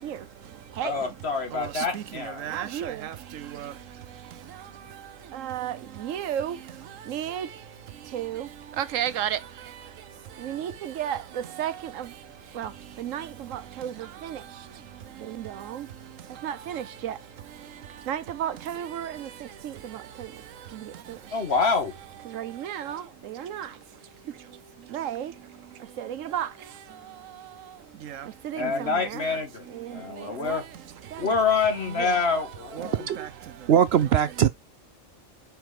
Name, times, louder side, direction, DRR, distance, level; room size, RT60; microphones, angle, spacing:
voice 1, 0.8-2.4 21.3-21.9 28.6-30.6 31.2-33.0, left 4 dB, 55° left, 1.8 m, -26 dB
voice 2, 1.5-2.0 2.4-3.1 3.6-3.7 5.3-5.7 6.0-6.6 7.1-7.5 8.1-8.5 8.8-9.4 10.4-11.2 11.6-11.7 12.6-12.7 13.0-13.3 13.5-13.9 14.2-14.4 15.4-15.8 16.4-17.1 18.1-19.3 22.3-23.0 23.4-23.7 24.9-25.3 26.0-26.5 28.1-29.2 30.4-30.6 32.0-32.1 32.8-32.9 33.2-33.3, right 10 dB, 80° right, 1.1 m, -32 dB
voice 3, 33.7-34.5, right 9 dB, 65° right, 0.7 m, -20 dB
6.0 x 4.5 x 4.9 m
omnidirectional pair, 1.3 m